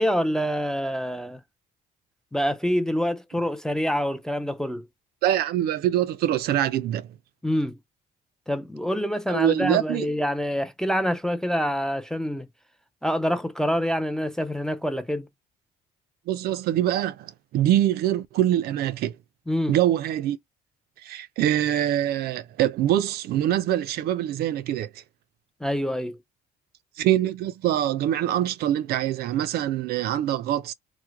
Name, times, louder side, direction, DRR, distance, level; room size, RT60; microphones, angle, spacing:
voice 1, 0.0-1.4 2.3-4.9 7.4-7.8 8.5-12.5 13.0-15.3 19.5-19.8 25.6-26.2, equal, 5° left, 0.4 m, -26 dB
voice 2, 5.2-7.1 9.3-10.1 16.3-19.1 19.7-20.4 21.0-24.9 27.0-30.7, right 12 dB, 65° right, 0.4 m, -24 dB
3.1 x 2.1 x 3.4 m
cardioid pair, 110°, 17 cm